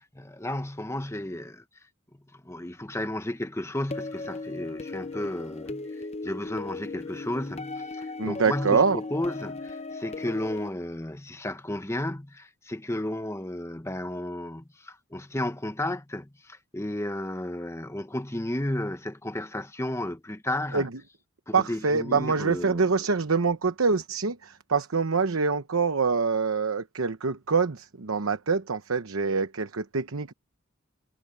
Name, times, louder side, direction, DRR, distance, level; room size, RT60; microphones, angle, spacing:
voice 1, 0.0-1.6 2.3-20.9 21.5-22.9, left 1 dB, 15° left, 1.0 m, -33 dB
sound 1, 3.9-10.7, left 3 dB, 30° left, 0.6 m, -37 dB
voice 2, 8.2-9.0 20.7-20.9 21.5-30.3, right 4 dB, 75° right, 0.9 m, -25 dB
head